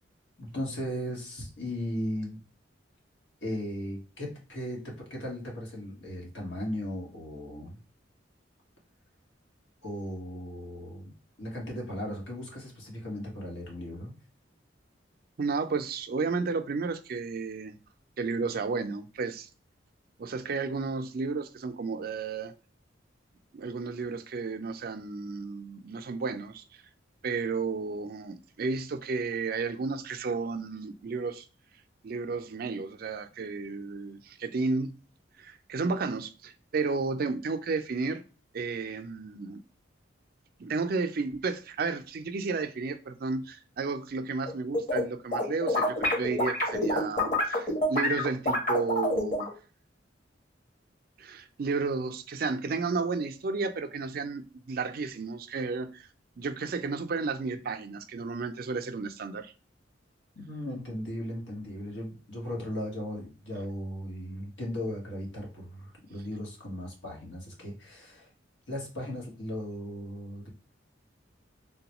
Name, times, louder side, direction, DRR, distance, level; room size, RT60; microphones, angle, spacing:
voice 1, 0.4-2.4 3.4-7.8 9.8-14.1 60.3-68.3 68.7-70.5, equal, 80° left, 1.5 m, -37 dB
voice 2, 15.4-17.8 18.2-19.5 20.2-22.5 23.5-26.8 27.2-31.5 32.0-34.9 35.4-38.2 38.5-39.6 40.6-49.5 51.2-56.1 56.4-59.5, right 4 dB, 50° right, 0.4 m, -32 dB
sound 1, 44.5-45.0 45.3-49.5, left 1 dB, 45° left, 1.2 m, -27 dB
3.8 x 2.2 x 2.9 m
head